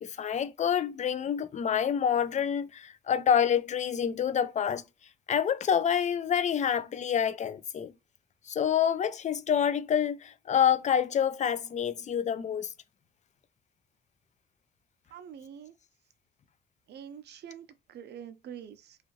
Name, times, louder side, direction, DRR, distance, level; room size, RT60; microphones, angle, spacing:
voice 1, 0.0-4.8 5.3-7.9 8.5-12.7, left 8 dB, 35° left, 0.4 m, -27 dB
voice 2, 15.1-15.7 16.9-19.0, right 8 dB, 60° right, 0.5 m, -45 dB
2.5 x 2.4 x 3.0 m
cardioid pair, 90°, 20 cm